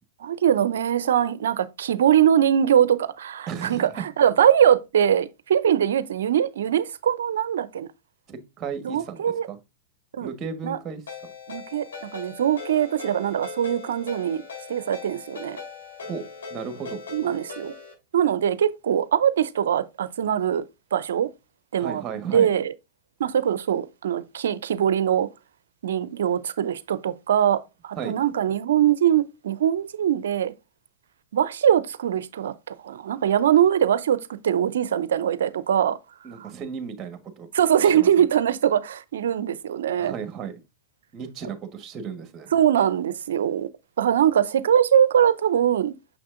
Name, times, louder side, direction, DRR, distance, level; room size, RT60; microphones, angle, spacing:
voice 1, 0.2-7.9 8.8-9.5 10.1-10.3 10.6-10.8 11.5-11.9 12.1-14.4 14.7-15.6 17.1-17.7 18.1-20.6 20.9-21.3 21.7-22.0 22.3-22.7 23.2-25.3 25.8-30.5 31.3-34.2 34.4-36.0 36.4-36.5 37.5-40.1 42.5-43.7 44.0-46.0, right 9 dB, 75° right, 0.5 m, -22 dB
voice 2, 3.5-4.0 8.3-9.6 10.2-11.0 16.1-17.0 21.8-22.5 28.0-28.1 36.2-37.5 37.8-38.3 40.0-40.6 41.1-42.5, right 6 dB, 30° right, 1.3 m, -34 dB
Ringtone, 11.1-17.9, left 4 dB, 85° left, 3.5 m, -40 dB
6.3 x 5.9 x 2.5 m
hypercardioid pair, 105°, 0 cm